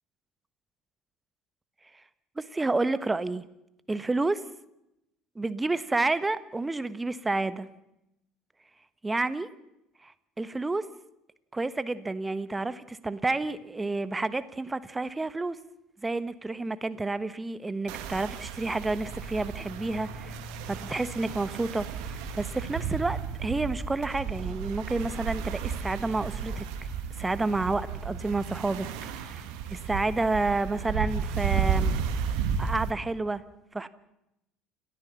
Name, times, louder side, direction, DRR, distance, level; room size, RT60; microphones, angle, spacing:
voice 1, 2.4-3.4 3.9-4.4 5.3-7.7 9.0-9.5 10.0-10.8 11.5-15.6 16.0-26.6 27.2-28.9 29.2-31.9 32.6-33.4 33.7-33.9, right 3 dB, 15° right, 1.3 m, -30 dB
sound 1, 17.9-32.9, right 7 dB, 65° right, 2.4 m, -33 dB
29.0 x 13.5 x 7.2 m
figure-of-eight pair, 60°, 0 cm